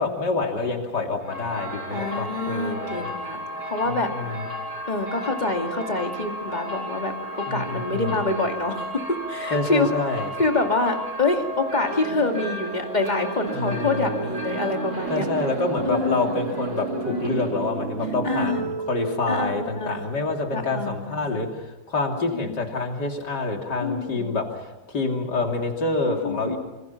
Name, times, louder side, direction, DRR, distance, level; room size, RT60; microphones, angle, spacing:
voice 1, 0.0-3.1 3.9-4.3 7.5-8.2 9.5-10.3 13.5-14.3 15.1-26.6, left 3 dB, 60° left, 2 dB, 3.5 m, -27 dB
sound 1, 1.2-17.6, equal, 85° right, 7.8 m, -34 dB
voice 2, 1.9-4.1 4.9-7.1 7.5-9.9 10.4-15.2 15.9-16.4 16.9-17.4 18.2-18.6 19.3-20.0 20.5-21.3 22.2-22.7 23.8-24.4 26.1-26.6, left 3 dB, 20° left, 3 dB, 2.3 m, -26 dB
sound 2, 11.9-20.3, right 5 dB, 45° right, 1.4 m, -32 dB
26.5 x 25.5 x 5.8 m, 1.1 s
omnidirectional pair, 2.1 m